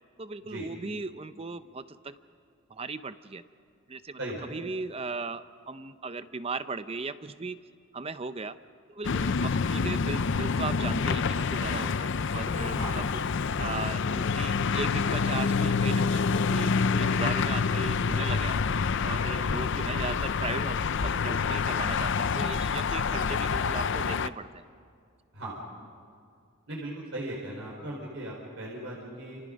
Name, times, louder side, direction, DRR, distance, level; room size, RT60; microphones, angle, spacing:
voice 1, 0.2-2.2 2.7-3.4 3.9-7.6 7.9-8.6 8.9-13.2 13.6-18.6 19.0-24.6, right 3 dB, 30° right, 12 dB, 0.7 m, -37 dB
voice 2, 4.2-4.5 12.8-13.1 19.3-19.6 25.3-25.6 26.7-29.4, right 1 dB, 65° right, -3 dB, 4.4 m, -38 dB
sound 1, 9.0-24.3, left 5 dB, 55° left, 0.5 m, -27 dB
29.0 x 27.5 x 5.3 m, 2.3 s
head